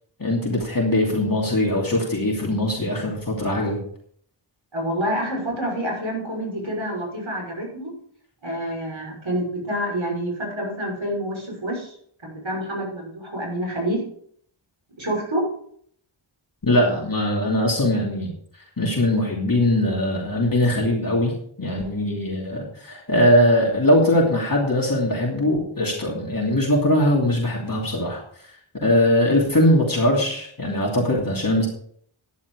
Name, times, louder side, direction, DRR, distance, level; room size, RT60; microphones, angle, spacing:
voice 1, 0.2-3.8 16.6-18.3 18.8-28.5 28.8-31.7, left 1 dB, 40° left, -2 dB, 2.9 m, -21 dB
voice 2, 4.7-7.9 8.4-11.9 12.2-14.0 14.9-15.4, equal, 65° right, -1 dB, 6.1 m, -27 dB
11.5 x 10.0 x 4.8 m, 0.63 s
wide cardioid pair, 60°, 50 cm